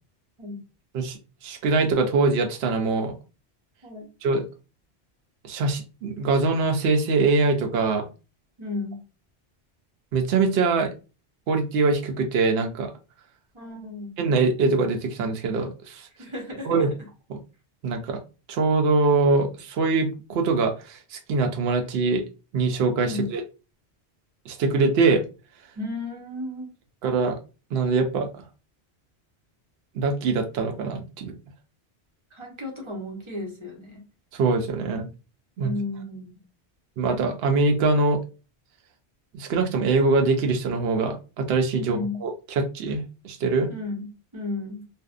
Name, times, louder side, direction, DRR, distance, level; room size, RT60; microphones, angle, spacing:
voice 1, 0.9-3.1 4.2-4.5 5.4-8.1 10.1-10.9 11.5-12.9 14.2-16.1 16.6-16.9 17.3-17.4 17.8-18.2 18.5-22.2 22.5-23.4 24.5-25.2 27.0-27.4 27.7-28.3 29.9-31.4 34.3-35.1 35.6-35.7 37.0-38.2 39.3-43.7, right 3 dB, 70° right, 4 dB, 0.8 m, -23 dB
voice 2, 8.6-9.0 13.5-14.1 16.2-16.9 23.0-23.3 25.8-26.7 32.3-34.0 35.6-36.4 41.8-42.2 43.7-44.1 44.3-44.8, left 2 dB, 35° right, 0 dB, 0.6 m, -33 dB
2.6 x 2.0 x 2.3 m, 0.32 s
omnidirectional pair, 1.1 m